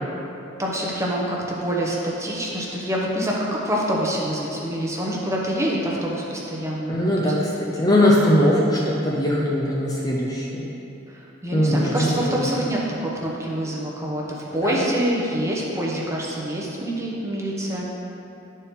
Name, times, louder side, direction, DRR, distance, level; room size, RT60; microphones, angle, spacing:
voice 1, 0.6-7.3 11.1-14.2 14.5-17.9, right 1 dB, 15° right, -3 dB, 0.8 m, -26 dB
voice 2, 6.9-10.6 11.5-12.4 14.6-14.8, left 1 dB, 20° left, -4 dB, 0.5 m, -20 dB
10.5 x 4.3 x 3.6 m, 2.9 s
head